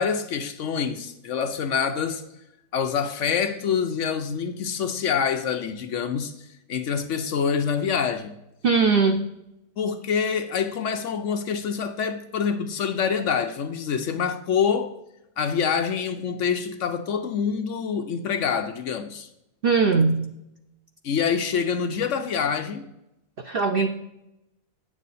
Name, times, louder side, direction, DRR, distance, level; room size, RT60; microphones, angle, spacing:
voice 1, 0.0-2.3 2.7-6.3 6.7-8.3 9.8-15.0 15.4-19.3 21.0-22.9, left 6 dB, 65° left, 0.9 m, -26 dB
voice 2, 8.6-9.2 19.6-20.3 23.5-23.9, right 4 dB, 55° right, 0.6 m, -20 dB
9.5 x 7.4 x 4.1 m
omnidirectional pair, 1.6 m